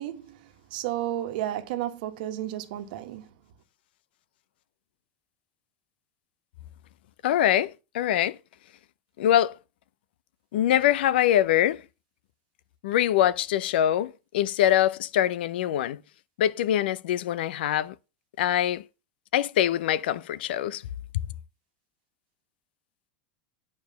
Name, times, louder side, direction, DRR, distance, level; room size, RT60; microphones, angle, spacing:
voice 1, 0.0-3.3, right 13 dB, 60° right, 1.4 m, -33 dB
voice 2, 7.2-8.4 9.2-9.6 10.5-11.8 12.8-16.0 16.4-17.9 18.4-18.8 19.3-20.8 21.1-21.2, left 12 dB, 85° left, 0.6 m, -24 dB
9.5 x 4.8 x 5.6 m
supercardioid pair, 170°, 5 cm